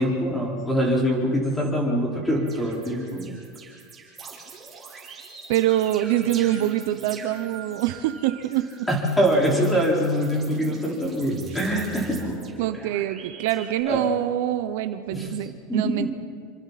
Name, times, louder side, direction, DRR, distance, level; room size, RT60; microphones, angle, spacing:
voice 1, 0.0-3.3 8.9-12.4 13.9-14.1 15.1-15.3 15.7-16.1, equal, 5° left, -3 dB, 4.7 m, -24 dB
sound 1, 0.6-0.7 1.2-1.7 2.2-13.8, right 4 dB, 15° right, 6.3 m, -43 dB
voice 2, 5.5-8.7 12.6-16.1, right 13 dB, 65° right, 10 dB, 0.9 m, -25 dB
27.5 x 25.0 x 4.3 m, 2.1 s
supercardioid pair, 155°, 0 cm